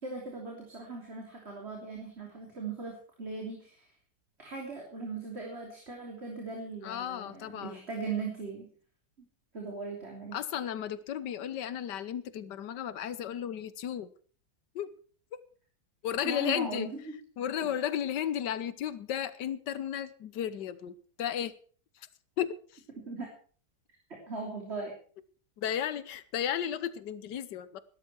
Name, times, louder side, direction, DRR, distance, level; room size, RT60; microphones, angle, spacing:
voice 1, 0.0-3.9 4.4-8.7 9.5-10.4 16.2-17.1 23.1-23.3 24.1-25.0, right 4 dB, 40° right, 0 dB, 3.6 m, -39 dB
voice 2, 6.8-7.9 10.3-14.1 14.7-14.9 15.3-15.4 16.0-16.9 17.4-21.5 21.9-22.1 22.4-22.8 25.6-27.8, left 10 dB, 90° left, 15 dB, 1.6 m, -34 dB
16.5 x 13.0 x 4.5 m, 0.43 s
omnidirectional pair, 1.8 m